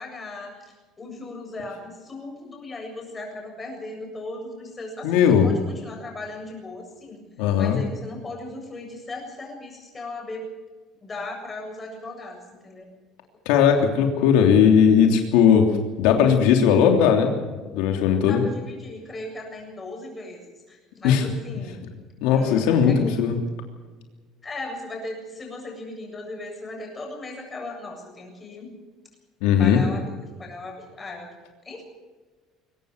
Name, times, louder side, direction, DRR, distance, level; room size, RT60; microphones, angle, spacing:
voice 1, 0.0-7.2 7.6-10.4 11.0-12.9 18.2-21.8 22.3-23.2 24.4-28.7 29.6-31.3 31.6-31.8, left 2 dB, 15° left, 1 dB, 7.5 m, -37 dB
voice 2, 5.0-5.5 7.4-7.8 13.4-15.7 16.0-17.3 17.7-18.4 21.0-21.2 22.2-23.4 29.4-29.8, left 7 dB, 85° left, 3 dB, 3.1 m, -18 dB
23.0 x 18.5 x 6.7 m, 1.3 s
cardioid pair, 155°, 0 cm